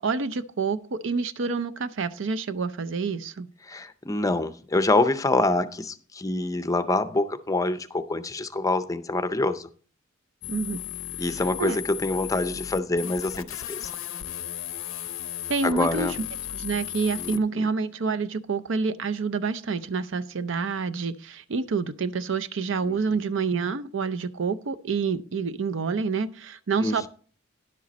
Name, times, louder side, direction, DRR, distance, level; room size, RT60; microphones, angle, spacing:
voice 1, 0.0-3.5 10.5-10.8 11.6-11.8 15.5-16.1 16.5-27.1, right 4 dB, 65° right, 13 dB, 0.5 m, -28 dB
voice 2, 3.6-9.7 11.2-13.9 15.6-16.2 17.2-17.6 22.8-23.2 26.8-27.1, left 2 dB, 15° left, 12 dB, 0.5 m, -26 dB
sound 1, 10.4-17.4, left 11 dB, 75° left, 0.6 m, -35 dB
10.5 x 7.6 x 4.1 m, 0.43 s
head